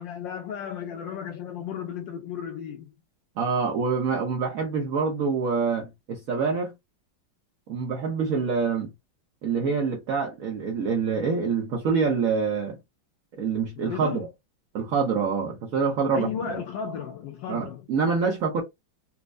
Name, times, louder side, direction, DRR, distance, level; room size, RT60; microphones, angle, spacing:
voice 1, 0.0-2.9 13.8-14.2 16.1-17.8, left 8 dB, 75° left, 1.1 m, -34 dB
voice 2, 3.4-6.7 7.7-8.9 9.4-12.8 13.4-14.3 14.7-16.6 17.5-18.6, right 5 dB, 75° right, 0.7 m, -26 dB
4.3 x 2.0 x 2.5 m
omnidirectional pair, 2.3 m